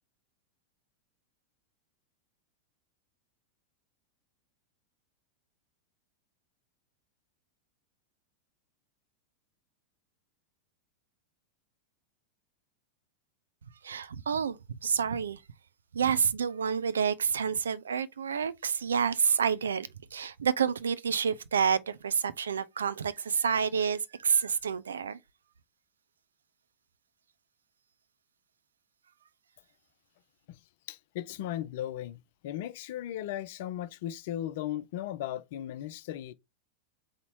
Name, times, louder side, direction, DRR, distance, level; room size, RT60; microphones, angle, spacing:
voice 1, 13.8-15.4 15.9-25.2, right 7 dB, 70° right, 0.4 m, -29 dB
voice 2, 30.9-36.3, left 12 dB, 50° left, 0.5 m, -37 dB
4.0 x 2.9 x 4.3 m
figure-of-eight pair, 90°, 0 cm